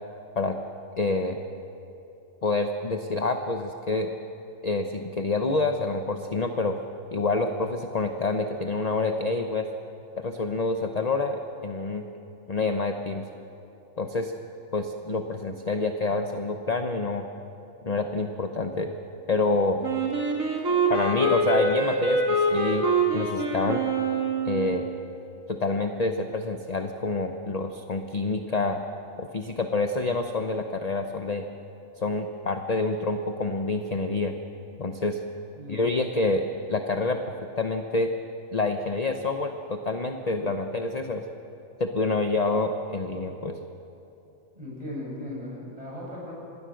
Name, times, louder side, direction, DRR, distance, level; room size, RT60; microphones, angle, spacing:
voice 1, 1.0-1.4 2.4-4.1 4.6-6.8 7.1-9.7 10.2-11.4 11.6-12.1 12.5-13.2 14.0-14.3 14.7-17.2 17.8-18.9 19.3-19.8 20.9-23.8 24.4-24.9 25.5-28.8 29.2-31.4 32.0-34.4 34.8-35.2 35.7-37.2 37.6-38.1 38.5-41.2 41.8-43.6, left 3 dB, 35° left, 6 dB, 0.9 m, -27 dB
Wind instrument woodwind instrument, 19.8-24.9, right 2 dB, 70° right, 3.0 m, -25 dB
voice 2, 35.6-35.9 44.5-46.3, left 1 dB, 25° right, -5 dB, 7.8 m, -37 dB
26.5 x 19.5 x 6.4 m, 2.8 s
omnidirectional pair, 1.4 m